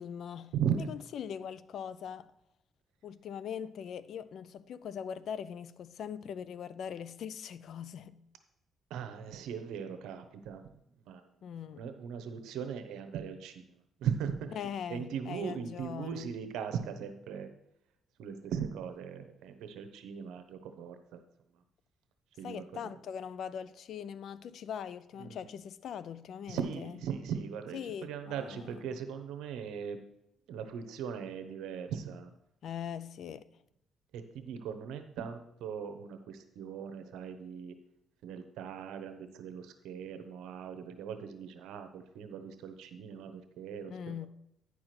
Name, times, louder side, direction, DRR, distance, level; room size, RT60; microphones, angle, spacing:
voice 1, 0.0-2.3 3.0-8.2 11.4-11.9 14.5-16.3 22.4-26.9 27.7-29.0 32.6-33.5 43.9-44.3, left 8 dB, 70° left, 0.4 m, -41 dB
voice 2, 8.9-10.6 11.0-11.2 11.8-13.6 14.0-14.5 14.9-17.5 18.2-21.2 22.4-22.6 25.2-25.5 26.5-30.0 30.5-32.3 34.1-37.7 38.2-43.9, right 7 dB, 90° right, 0.9 m, -38 dB
9.8 x 4.9 x 5.9 m
cardioid pair, 90°, 0 cm